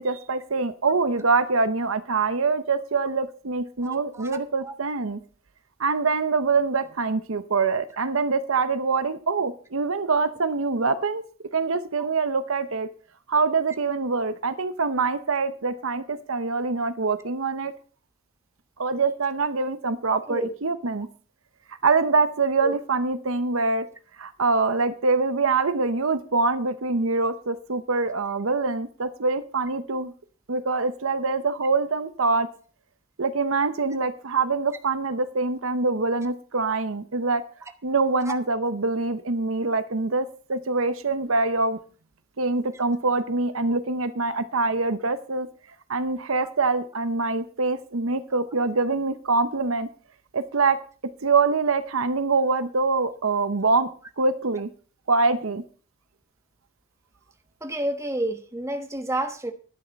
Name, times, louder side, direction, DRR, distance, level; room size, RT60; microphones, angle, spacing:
voice 1, 0.0-5.2 5.8-11.2 11.5-12.9 13.3-17.7 18.8-21.1 21.8-23.9 24.2-30.1 30.5-32.5 33.2-37.4 37.8-41.8 42.4-45.5 45.9-49.9 50.3-50.8 51.2-53.9 54.2-54.7 55.1-55.6, right 4 dB, 65° right, 12 dB, 0.9 m, -24 dB
voice 2, 3.9-4.3 4.6-4.7 12.0-12.1 20.1-20.6 22.6-22.7 46.4-46.5 57.6-59.5, right 1 dB, 15° right, 6 dB, 1.1 m, -30 dB
11.5 x 8.6 x 5.3 m, 0.40 s
head